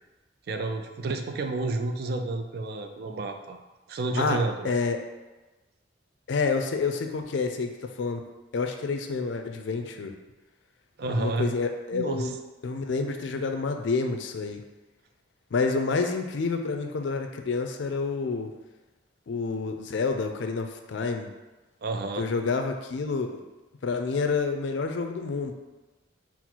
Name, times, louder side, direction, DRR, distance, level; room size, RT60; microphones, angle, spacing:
voice 1, 0.5-3.6 3.9-4.8 11.0-11.5 11.9-12.3 21.8-22.3, right 2 dB, 55° right, 5 dB, 0.3 m, -30 dB
voice 2, 4.1-5.0 6.3-7.7 8.0-8.2 8.5-10.1 11.0-12.4 12.6-14.6 15.5-18.5 19.3-21.3 22.2-23.4 23.8-25.5, left 4 dB, 75° left, 5 dB, 0.4 m, -28 dB
4.0 x 2.0 x 4.4 m, 1.2 s
head